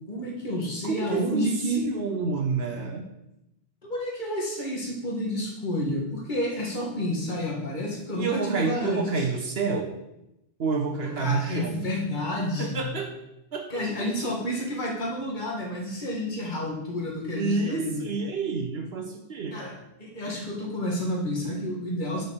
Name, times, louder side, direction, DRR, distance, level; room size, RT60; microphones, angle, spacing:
voice 1, 0.1-1.9 3.8-9.0 10.8-12.9 13.7-18.1 19.5-19.7 20.0-22.2, left 1 dB, 40° left, -1 dB, 1.8 m, -30 dB
voice 2, 0.8-3.1 8.1-9.9 10.6-11.9 12.6-13.1 13.5-13.7 17.4-19.6, right 4 dB, 60° right, 4 dB, 1.0 m, -29 dB
6.1 x 5.1 x 6.9 m, 0.89 s
omnidirectional pair, 1.2 m